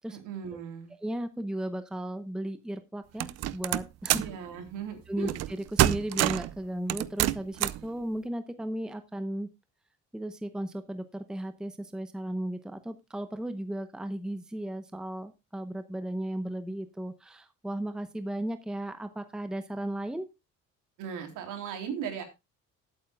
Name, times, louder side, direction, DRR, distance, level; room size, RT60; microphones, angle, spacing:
voice 1, 0.1-0.9 4.1-5.3 21.0-22.2, right 7 dB, 70° right, 5 dB, 3.6 m, -37 dB
voice 2, 1.0-4.2 5.1-9.5 10.1-20.3, right 1 dB, ahead, 9 dB, 0.8 m, -35 dB
sound 1, 3.2-4.4 5.3-5.5 5.8-6.5 6.9-7.9, right 14 dB, 55° right, 0.6 m, -26 dB
19.0 x 8.9 x 2.3 m, 0.24 s
cardioid pair, 150°, 32 cm